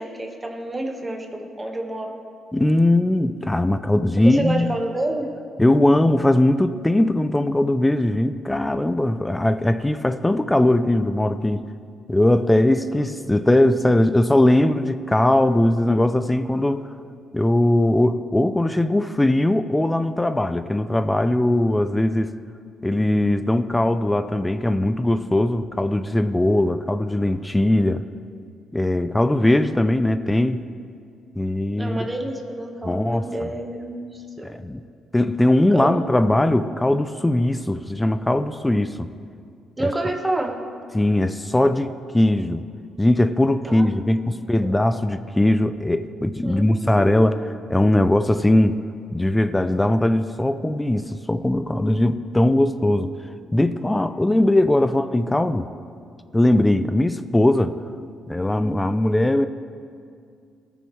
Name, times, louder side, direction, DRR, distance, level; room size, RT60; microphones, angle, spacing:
voice 1, 0.0-2.2 4.2-5.3 31.8-34.6 35.7-36.0 39.8-40.6 43.6-43.9 44.3-44.7 46.4-47.3, right 2 dB, 15° right, 2 dB, 1.3 m, -29 dB
voice 2, 2.5-4.7 5.6-11.6 12.1-16.9 17.3-22.3 22.8-28.0 28.7-30.6 31.4-32.1 32.9-33.5 34.4-34.8 35.1-39.1 39.8-39.9 40.9-42.6 43.0-48.7 49.1-53.1 53.5-55.7 56.3-57.7 58.3-59.5, left 1 dB, 10° left, 11 dB, 0.3 m, -20 dB
18.0 x 7.0 x 3.2 m, 2.3 s
cardioid pair, 90°, 0 cm